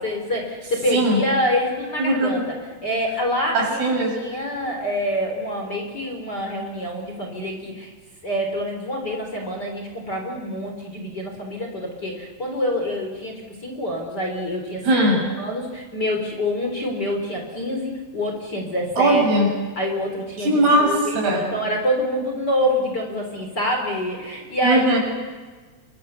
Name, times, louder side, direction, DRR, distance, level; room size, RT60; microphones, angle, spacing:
voice 1, 0.0-2.6 2.8-3.8 4.2-7.9 8.2-14.8 15.4-19.2 19.8-24.8, equal, 25° left, 1 dB, 3.7 m, -26 dB
voice 2, 0.9-1.2 2.0-2.5 3.5-4.1 14.8-15.2 19.0-19.5 20.4-21.5 24.6-25.0, right 1 dB, 70° right, 0 dB, 8.6 m, -19 dB
28.5 x 25.0 x 6.9 m, 1.4 s
omnidirectional pair, 4.9 m